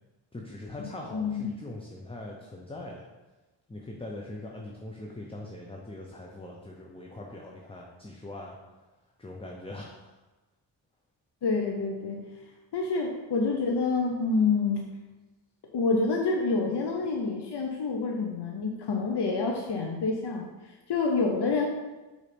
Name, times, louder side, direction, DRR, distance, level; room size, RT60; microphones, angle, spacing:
voice 1, 0.3-3.1 3.7-8.6 9.2-10.1, left 1 dB, 10° left, -1 dB, 0.8 m, -41 dB
voice 2, 1.1-1.5 11.4-12.2 12.7-14.9 15.7-20.5 20.9-21.7, left 4 dB, 60° left, 1 dB, 0.8 m, -27 dB
4.9 x 4.1 x 5.1 m, 1.2 s
cardioid pair, 65°, 45 cm